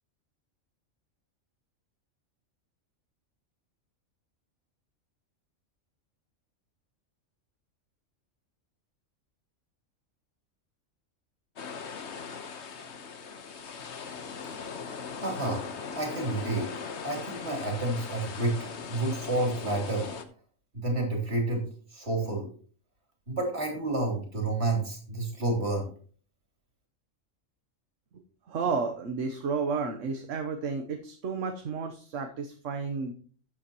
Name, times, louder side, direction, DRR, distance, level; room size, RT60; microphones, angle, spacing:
sound 1, 11.6-20.2, left 5 dB, 60° left, 1.3 m, -39 dB
voice 1, 15.1-15.7 15.9-16.7 17.0-18.6 18.8-20.1 20.7-22.5 23.3-25.9, right 2 dB, 50° right, 1 dB, 3.4 m, -30 dB
voice 2, 28.5-33.1, right 5 dB, 70° right, 5 dB, 1.3 m, -32 dB
13.0 x 8.4 x 3.0 m, 0.43 s
omnidirectional pair, 1.4 m